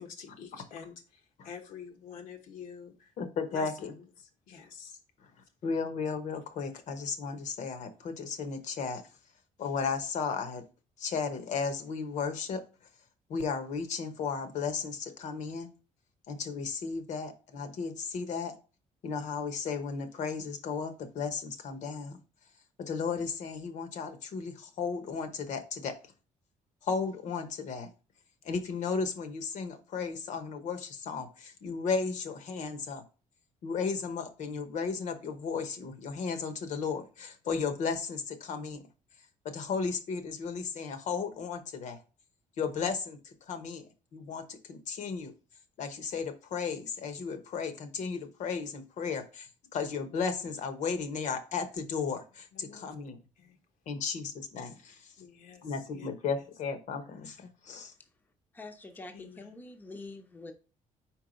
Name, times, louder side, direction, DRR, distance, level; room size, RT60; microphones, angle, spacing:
voice 1, 0.0-3.1 3.5-5.0 52.5-52.9 53.4-53.6 55.2-56.1 56.3-56.5 59.1-59.6, left 6 dB, 80° left, 1.2 m, -48 dB
voice 2, 3.2-3.9 5.6-9.0 9.6-10.6 11.0-12.6 13.3-15.7 16.3-18.5 19.0-22.2 22.8-25.9 26.8-27.9 28.4-33.0 33.6-38.8 39.4-42.0 42.6-43.9 44.1-45.3 45.8-53.2 53.9-55.0 55.6-57.9, left 5 dB, 60° left, 1.0 m, -34 dB
voice 3, 58.5-60.5, left 2 dB, 15° left, 0.7 m, -45 dB
4.8 x 4.6 x 5.1 m
cardioid pair, 150°, 14 cm